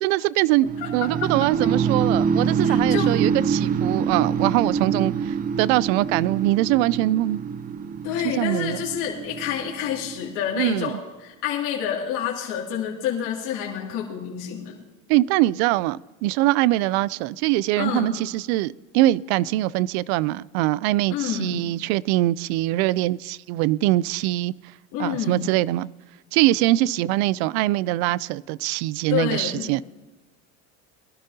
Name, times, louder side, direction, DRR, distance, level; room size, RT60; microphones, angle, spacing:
voice 1, 0.0-7.4 8.4-8.8 10.6-11.0 15.1-24.5 25.0-25.9 26.3-29.8, right 16 dB, 75° right, 0.5 m, -23 dB
sound 1, 0.7-10.6, right 6 dB, 25° right, 0.5 m, -25 dB
voice 2, 0.8-1.5 2.6-3.1 8.0-14.8 17.7-18.2 21.1-21.6 24.9-25.5 29.1-29.7, left 9 dB, 70° left, 2.5 m, -28 dB
21.0 x 12.5 x 2.8 m
supercardioid pair, 110°, 33 cm